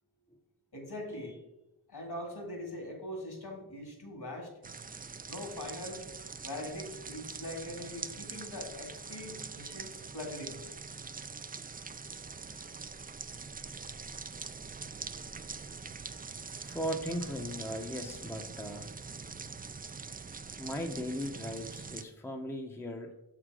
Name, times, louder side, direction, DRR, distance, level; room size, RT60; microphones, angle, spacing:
voice 1, 0.7-1.4 1.9-4.5 5.3-6.1 6.4-10.7, left 1 dB, 60° left, 2 dB, 2.1 m, -42 dB
sound 1, 4.6-22.0, right 4 dB, 20° right, 0.3 m, -44 dB
voice 2, 16.6-18.9 20.6-23.1, equal, 5° left, 3 dB, 0.7 m, -37 dB
7.1 x 3.8 x 4.7 m, 0.95 s
cardioid pair, 45°, 45 cm